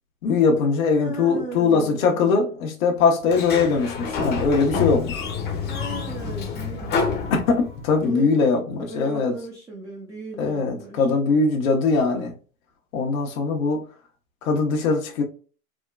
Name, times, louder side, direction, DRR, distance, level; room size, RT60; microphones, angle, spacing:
voice 1, 0.2-5.2 7.3-9.3 10.4-12.3 12.9-13.8 14.4-15.2, left 4 dB, 70° left, 0.8 m, -21 dB
voice 2, 1.0-2.4 5.6-7.3 8.0-8.4 8.8-11.1, right 2 dB, 10° right, 0.4 m, -37 dB
Sliding door, 3.2-8.0, left 5 dB, 25° left, 0.7 m, -28 dB
3.5 x 2.2 x 2.2 m
hypercardioid pair, 115°, 42 cm